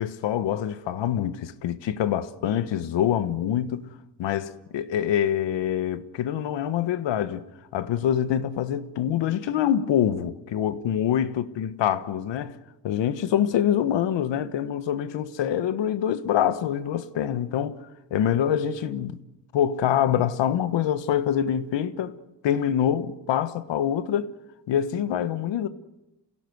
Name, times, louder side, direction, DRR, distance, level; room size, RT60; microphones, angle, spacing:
voice 1, 0.0-3.9 4.2-7.4 7.7-12.6 12.8-17.8 18.1-19.2 19.5-22.1 22.4-24.3 24.7-25.7, left 10 dB, 85° left, 1.4 m, -25 dB
27.0 x 17.0 x 8.0 m
cardioid pair, 120°, 43 cm